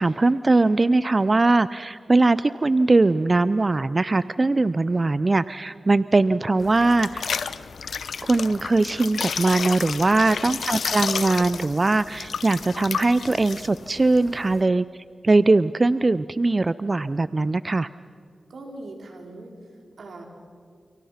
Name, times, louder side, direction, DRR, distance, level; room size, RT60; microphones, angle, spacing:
voice 1, 0.0-7.3 8.2-17.9, right 2 dB, 40° right, 15 dB, 0.5 m, -21 dB
sound 1, 6.6-14.6, left 6 dB, 85° left, 0.8 m, -32 dB
voice 2, 18.5-19.5 20.0-20.2, right 2 dB, 80° right, 2 dB, 4.5 m, -41 dB
29.5 x 29.0 x 5.9 m, 2.2 s
cardioid pair, 50°, 0 cm